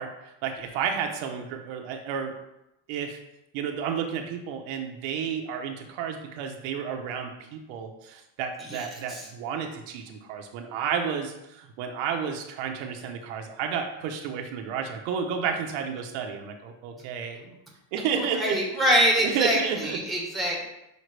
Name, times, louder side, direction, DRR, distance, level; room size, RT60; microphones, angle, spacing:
voice 1, 0.0-2.3 2.9-3.2 3.5-17.4 17.9-18.6 19.2-20.0, right 7 dB, 75° right, 3 dB, 1.0 m, -31 dB
voice 2, 8.7-9.3 17.4-17.5 18.2-20.7, equal, ahead, -2 dB, 1.3 m, -25 dB
6.5 x 5.1 x 3.3 m, 0.87 s
cardioid pair, 165°, 47 cm